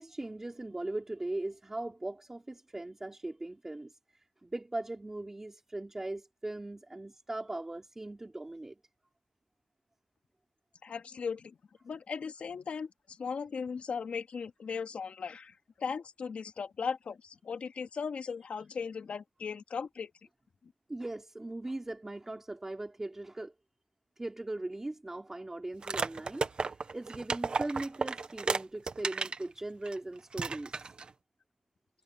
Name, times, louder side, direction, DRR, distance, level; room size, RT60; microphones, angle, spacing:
voice 1, 0.0-8.8 20.9-23.5 24.2-30.9, right 2 dB, 20° right, 3.5 m, -39 dB
voice 2, 10.8-11.6 11.8-20.1, left 6 dB, 75° left, 2.5 m, -38 dB
sound 1, 25.8-29.4 29.9-30.0 30.3-31.1, right 4 dB, 50° right, 1.2 m, -33 dB
wide cardioid pair, 140°, 2 cm